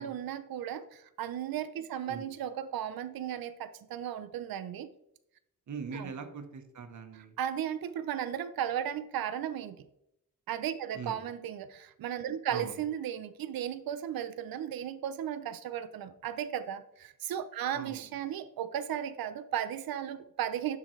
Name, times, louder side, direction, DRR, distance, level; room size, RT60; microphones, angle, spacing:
voice 1, 0.0-4.9 5.9-6.1 7.1-9.8 10.5-20.8, right 10 dB, 90° right, 12 dB, 0.5 m, -35 dB
voice 2, 5.7-7.3 10.9-11.2 12.5-12.8 17.7-18.0, right 5 dB, 55° right, 7 dB, 0.9 m, -41 dB
10.0 x 3.8 x 3.1 m, 0.80 s
wide cardioid pair, 135°, 35 cm